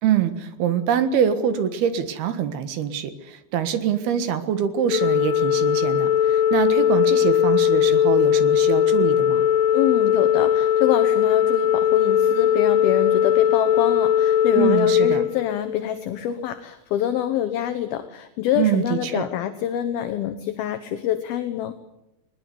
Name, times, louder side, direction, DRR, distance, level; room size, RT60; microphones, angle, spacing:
voice 1, 0.0-9.5 14.6-15.2 18.6-19.3, right 9 dB, 65° right, 11 dB, 3.2 m, -24 dB
Organ, 4.9-16.0, left 9 dB, 85° left, 3.8 m, -19 dB
voice 2, 9.7-21.8, left 11 dB, 70° left, 9 dB, 2.5 m, -26 dB
21.0 x 20.0 x 9.5 m, 0.86 s
omnidirectional pair, 5.3 m